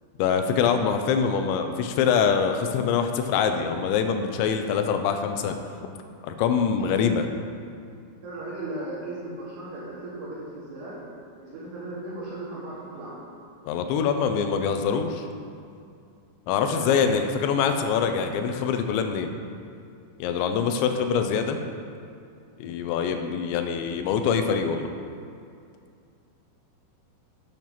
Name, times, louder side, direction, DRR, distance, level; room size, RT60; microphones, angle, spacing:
voice 1, 0.2-5.6 6.2-7.2 13.7-15.3 16.5-19.3 20.2-21.6 22.6-24.9, left 6 dB, 85° left, 6 dB, 3.0 m, -24 dB
voice 2, 6.8-7.3 8.2-10.9 11.4-13.2 16.7-17.1 22.6-22.7, right 2 dB, 70° right, -9 dB, 4.3 m, -37 dB
9.3 x 8.8 x 5.8 m, 2.4 s
omnidirectional pair, 5.1 m